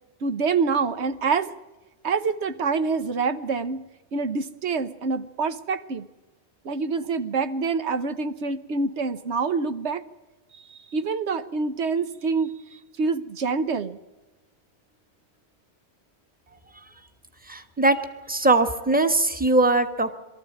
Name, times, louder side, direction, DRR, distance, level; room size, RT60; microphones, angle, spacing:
voice 1, 0.2-1.5 2.0-3.8 4.1-6.1 6.6-10.0 10.6-14.0, right 4 dB, 80° right, 10 dB, 1.3 m, -26 dB
voice 2, 17.5-18.0 18.3-20.1, right 2 dB, 10° right, 7 dB, 1.3 m, -21 dB
23.0 x 14.0 x 8.7 m, 1.1 s
omnidirectional pair, 1.1 m